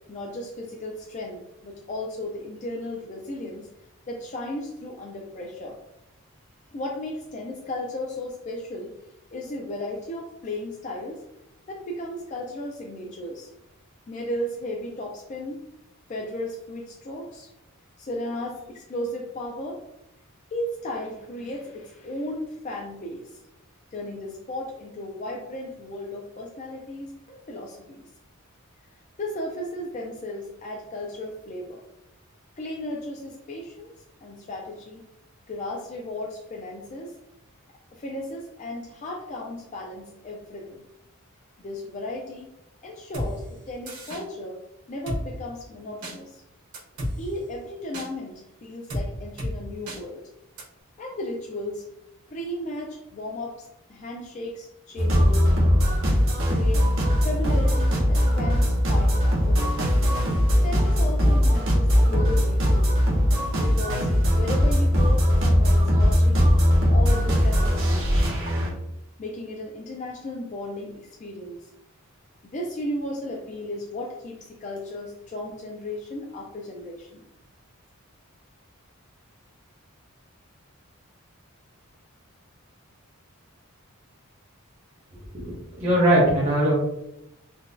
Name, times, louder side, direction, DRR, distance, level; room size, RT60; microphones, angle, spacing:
voice 1, 0.1-3.7 4.1-5.8 6.7-8.9 9.3-11.2 11.7-13.5 14.1-15.6 16.1-17.5 18.0-19.8 20.5-23.3 23.9-28.1 29.2-31.8 32.6-33.9 34.2-35.0 35.5-37.1 37.9-40.8 41.6-42.5 42.8-44.6 44.9-46.4 47.2-50.3 51.0-51.9 52.3-55.8 56.5-56.9 57.2-59.8 60.6-62.9 63.6-64.1 64.4-66.5 66.9-68.3 69.2-71.6 72.4-77.2, left 1 dB, 35° left, -1 dB, 0.3 m, -35 dB
Drum kit, 43.1-43.3 43.9-44.2 45.1-45.2 46.0-46.1 46.7-47.1 47.9-48.1 48.9-49.0 49.4-49.5 49.9-50.0 50.6-50.7, equal, 90° right, 1.2 m, -30 dB
sound 1, 55.0-68.7, equal, 60° right, 0.8 m, -20 dB
voice 2, 85.3-86.7, right 1 dB, 30° right, -8 dB, 0.8 m, -21 dB
3.8 x 2.3 x 2.5 m, 0.84 s
head